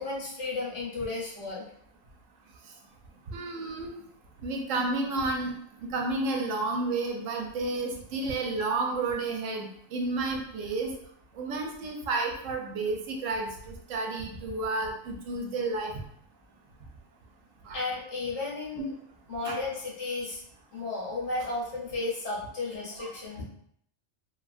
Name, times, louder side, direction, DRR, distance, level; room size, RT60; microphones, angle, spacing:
voice 1, 0.0-1.7 8.2-8.3 17.7-18.9 19.3-20.4 20.7-23.4, left 3 dB, 65° left, -5 dB, 1.3 m, -33 dB
voice 2, 3.3-3.9 4.4-11.0 11.3-15.9 17.6-17.8 18.8-18.9 19.5-19.6 23.0-23.1, right 3 dB, 85° right, 1 dB, 1.0 m, -31 dB
3.0 x 2.4 x 2.4 m, 0.68 s
omnidirectional pair, 1.3 m